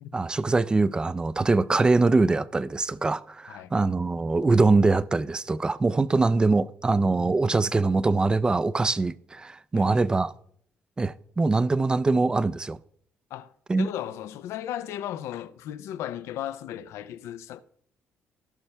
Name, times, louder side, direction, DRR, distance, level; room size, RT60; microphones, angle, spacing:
voice 1, 0.1-10.3 11.0-12.8 13.7-13.9, right 3 dB, 20° right, 0.4 m, -23 dB
voice 2, 9.7-10.1 13.3-13.5 13.8-17.6, left 11 dB, 85° left, 0.5 m, -36 dB
17.0 x 5.7 x 3.3 m
cardioid pair, 110°, 5 cm